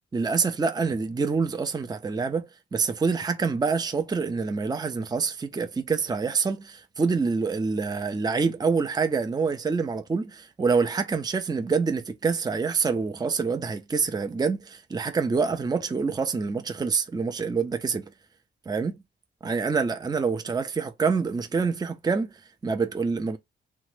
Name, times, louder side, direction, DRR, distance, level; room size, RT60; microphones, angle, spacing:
voice 1, 0.1-18.0 18.7-19.0 19.4-23.4, right 5 dB, 20° right, 0.5 m, -26 dB
2.9 x 2.1 x 3.1 m
cardioid pair, 65°, 21 cm